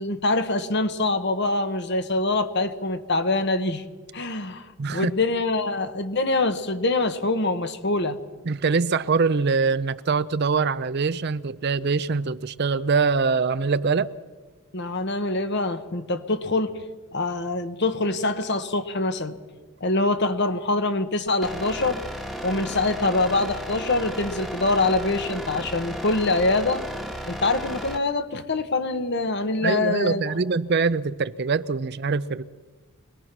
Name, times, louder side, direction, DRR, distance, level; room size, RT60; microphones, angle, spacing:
voice 1, 0.0-3.8 4.1-8.2 14.7-16.7 17.1-19.4 19.8-22.0 22.4-26.8 27.3-30.2, left 2 dB, 50° left, 1.2 m, -24 dB
voice 2, 4.8-5.1 8.5-14.1 29.6-32.4, right 4 dB, 50° right, 0.5 m, -23 dB
sound 1, 21.4-28.0, equal, ahead, 1.4 m, -34 dB
24.5 x 19.5 x 6.1 m
head